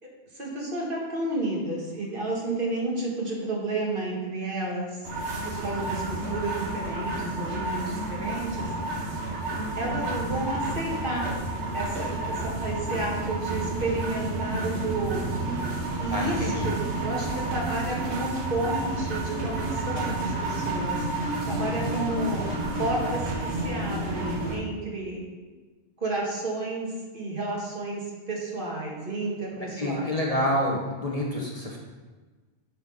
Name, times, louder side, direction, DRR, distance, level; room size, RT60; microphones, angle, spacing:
voice 1, 0.0-5.0 5.4-8.7 9.8-11.3 11.7-15.6 16.0-22.5 22.8-25.2 26.0-30.5, right 2 dB, 50° right, -3 dB, 1.7 m, -31 dB
sound 1, 5.0-24.6, right 2 dB, 75° right, 1.6 m, -30 dB
voice 2, 16.1-16.7 29.8-31.8, left 1 dB, 35° left, -2 dB, 1.1 m, -28 dB
8.5 x 4.4 x 5.4 m, 1.3 s
omnidirectional pair, 1.2 m